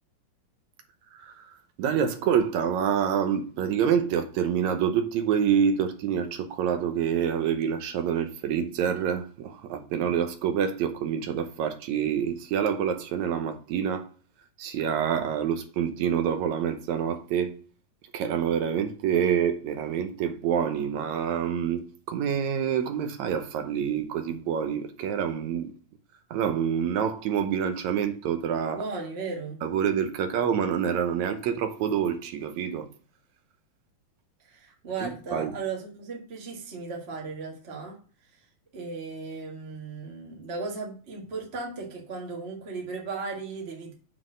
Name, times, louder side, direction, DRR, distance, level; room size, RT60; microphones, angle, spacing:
voice 1, 1.1-1.5 1.8-14.1 14.6-17.5 18.1-25.7 26.3-28.8 29.6-32.9 35.0-35.5, right 8 dB, 70° right, 1.8 m, -27 dB
voice 2, 28.7-29.6 34.5-38.0 38.7-43.9, right 4 dB, 35° right, 1.0 m, -36 dB
7.4 x 4.0 x 6.2 m
omnidirectional pair, 4.1 m